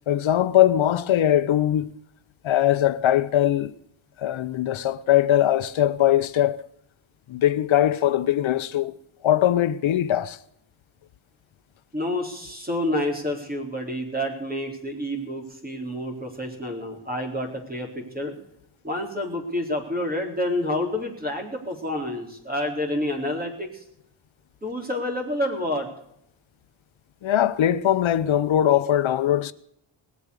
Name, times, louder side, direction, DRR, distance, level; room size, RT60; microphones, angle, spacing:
voice 1, 0.1-1.9 2.4-3.7 4.2-6.6 7.3-8.9 9.2-10.4 27.2-29.5, left 11 dB, 70° left, 0.8 m, -21 dB
voice 2, 11.9-18.3 18.8-23.8 24.6-25.9, left 1 dB, 20° right, 3.9 m, -28 dB
19.5 x 8.5 x 6.5 m
cardioid pair, 95°, 48 cm